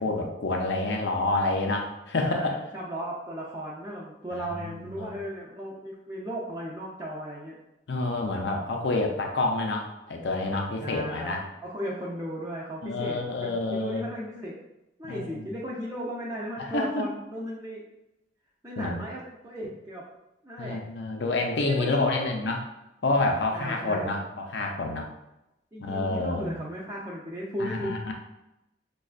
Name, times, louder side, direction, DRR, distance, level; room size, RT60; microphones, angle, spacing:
voice 1, 0.0-2.6 4.7-5.1 7.9-11.4 12.8-14.0 15.0-15.5 16.6-17.1 18.8-19.0 20.6-22.6 23.0-25.1 25.8-26.6 27.6-28.1, left 2 dB, 70° left, 2 dB, 0.5 m, -28 dB
voice 2, 2.2-7.6 10.8-14.6 15.0-17.9 18.6-20.1 20.4-20.8 21.6-22.5 23.5-24.1 25.7-28.0, equal, 15° right, -6 dB, 0.5 m, -36 dB
5.1 x 2.3 x 2.4 m, 0.90 s
head